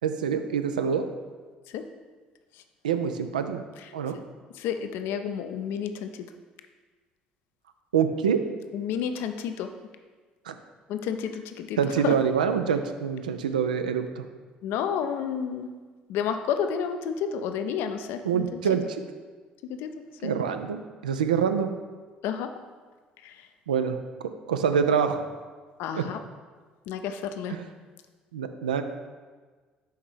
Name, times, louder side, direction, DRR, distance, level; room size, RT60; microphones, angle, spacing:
voice 1, 0.0-1.1 2.8-3.6 3.9-4.2 7.9-8.4 10.5-10.6 11.8-14.2 18.2-19.0 20.2-21.7 23.7-24.0 24.5-25.2 25.9-26.0 27.5-27.6 28.3-28.8, right 7 dB, 75° right, 8 dB, 0.4 m, -25 dB
voice 2, 4.6-6.1 8.7-9.7 10.9-11.8 12.0-12.1 14.6-15.7 16.1-18.4 19.6-19.9 20.2-20.3 22.2-22.5 25.8-26.2 26.9-27.6, left 8 dB, 55° left, 8 dB, 0.5 m, -30 dB
5.6 x 4.3 x 4.9 m, 1.4 s
figure-of-eight pair, 50°, 4 cm